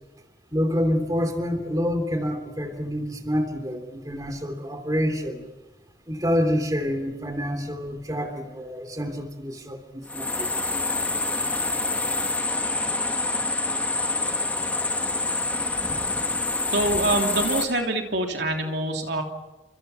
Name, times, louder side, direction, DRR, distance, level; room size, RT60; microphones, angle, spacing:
voice 1, 0.5-5.4 6.1-10.5, equal, 20° right, 5 dB, 3.1 m, -27 dB
sound 1, 10.0-17.7, left 2 dB, 10° left, 2.6 m, -26 dB
voice 2, 16.7-19.2, right 2 dB, 65° right, 2 dB, 3.2 m, -25 dB
30.0 x 26.5 x 5.8 m, 1.1 s
head